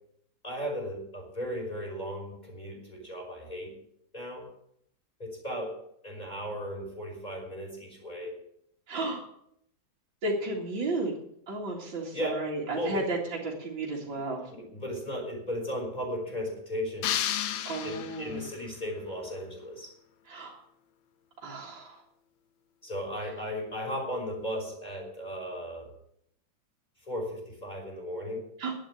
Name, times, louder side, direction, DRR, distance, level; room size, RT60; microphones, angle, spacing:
voice 1, 0.4-3.8 4.1-4.5 5.2-5.8 6.0-8.4 12.1-12.5 12.8-13.0 14.1-14.2 14.5-17.2 17.8-19.9 22.8-25.9 27.1-28.4, equal, 20° left, 0 dB, 5.5 m, -36 dB
voice 2, 8.9-9.2 10.2-11.1 11.5-13.2 13.4-14.5 17.6-18.4 20.3-20.6 21.4-22.0 28.6-28.7, right 2 dB, 75° right, -3 dB, 2.9 m, -33 dB
sound 1, 17.0-18.6, left 11 dB, 90° left, 1.6 m, -32 dB
11.5 x 9.2 x 8.8 m, 0.73 s
omnidirectional pair, 2.1 m